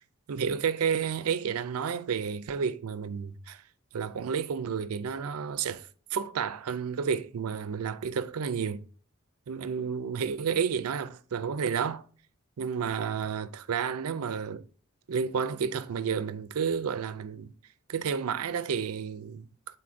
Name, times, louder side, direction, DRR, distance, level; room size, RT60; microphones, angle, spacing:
voice 1, 0.3-3.6 3.9-8.8 9.5-12.0 12.6-14.6 15.1-17.5 17.9-19.5, right 6 dB, 85° right, 0.4 m, -31 dB
9.6 x 3.9 x 2.5 m
head